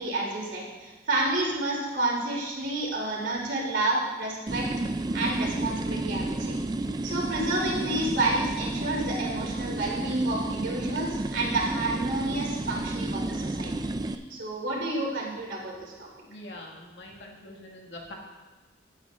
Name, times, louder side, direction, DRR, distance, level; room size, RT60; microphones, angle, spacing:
voice 1, 0.0-4.6 5.1-6.5 6.8-13.7 14.1-16.1, right 2 dB, 90° right, -3 dB, 3.1 m, -30 dB
sound 1, 4.5-14.2, right 2 dB, 20° right, 0.3 m, -31 dB
voice 2, 16.3-18.1, left 1 dB, 80° left, -2 dB, 2.0 m, -44 dB
17.5 x 8.8 x 2.5 m, 1.2 s
head